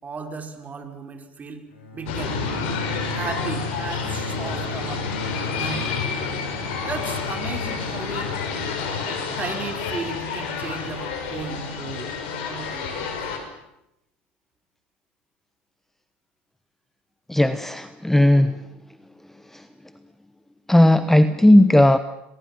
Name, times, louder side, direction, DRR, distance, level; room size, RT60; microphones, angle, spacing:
voice 1, 0.0-1.7 1.9-2.4 3.1-5.1 5.5-5.9 6.9-8.4 9.0-12.1 12.4-13.3, right 4 dB, 25° right, 6 dB, 4.7 m, -35 dB
Bowed string instrument, 1.7-6.9, equal, 85° left, 7.5 m, -36 dB
sound 1, 2.0-13.4, left 5 dB, 70° left, 6.0 m, -29 dB
voice 2, 17.3-18.6 19.5-19.7 20.7-22.0, left 1 dB, 5° left, 12 dB, 1.2 m, -16 dB
27.5 x 21.0 x 7.5 m, 0.85 s
hypercardioid pair, 80°, 6 cm